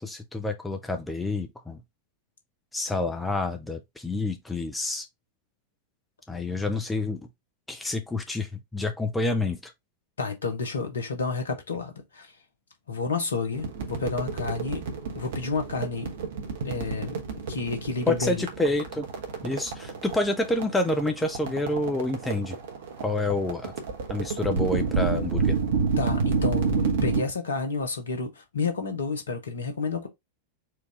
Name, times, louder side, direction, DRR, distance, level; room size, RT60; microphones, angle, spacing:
voice 1, 0.0-1.8 2.7-5.1 6.3-7.2 7.7-9.7 18.1-19.0 19.4-22.6 23.0-23.7 24.1-25.6, left 2 dB, 10° left, 0.6 m, -28 dB
voice 2, 10.2-12.3 12.9-14.8 15.1-16.1 16.6-18.5 26.0-30.1, left 4 dB, 70° left, 1.1 m, -30 dB
sound 1, 13.5-27.2, right 5 dB, 60° right, 1.1 m, -29 dB
4.6 x 2.6 x 3.5 m
figure-of-eight pair, 90°, 0 cm